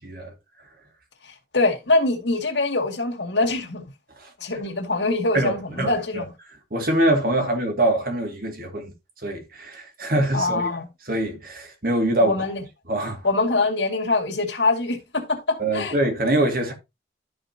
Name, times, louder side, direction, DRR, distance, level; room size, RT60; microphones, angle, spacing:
voice 1, 1.2-3.9 4.4-6.3 10.3-10.9 12.2-12.6 13.2-16.0, left 2 dB, 85° left, 2.3 m, -24 dB
voice 2, 5.3-6.2 6.7-8.9 9.2-10.7 11.0-12.4 12.9-13.3 15.6-16.7, right 1 dB, 55° right, 2.3 m, -24 dB
13.0 x 5.2 x 2.8 m
head